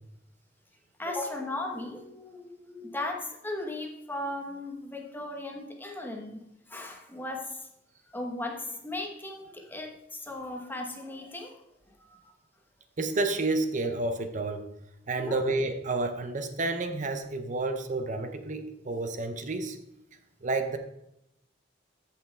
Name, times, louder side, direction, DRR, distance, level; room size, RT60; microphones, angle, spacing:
voice 1, 1.0-6.4 6.7-7.6 8.1-12.3 15.1-15.4, left 2 dB, 10° left, 1 dB, 1.2 m, -37 dB
voice 2, 13.0-14.7 15.1-19.8 20.4-20.8, right 2 dB, 45° right, 7 dB, 0.7 m, -30 dB
14.5 x 5.8 x 3.4 m, 0.85 s
head